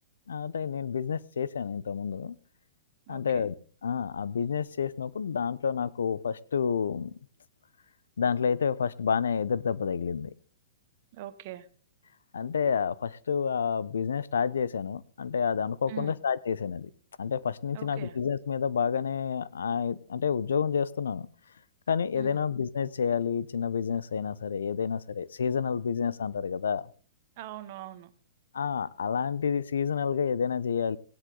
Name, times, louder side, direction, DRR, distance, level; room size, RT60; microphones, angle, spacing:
voice 1, 0.3-2.4 3.1-3.5 3.8-7.2 8.2-10.3 12.3-16.9 17.2-21.3 21.9-26.9 28.5-31.0, left 6 dB, 80° left, 19 dB, 0.7 m, -29 dB
voice 2, 3.1-3.5 11.1-11.7 15.9-16.2 17.7-18.2 22.1-22.4 27.4-28.1, right 13 dB, 50° right, 12 dB, 1.2 m, -42 dB
17.0 x 9.9 x 3.8 m, 0.40 s
hypercardioid pair, 120°, 0 cm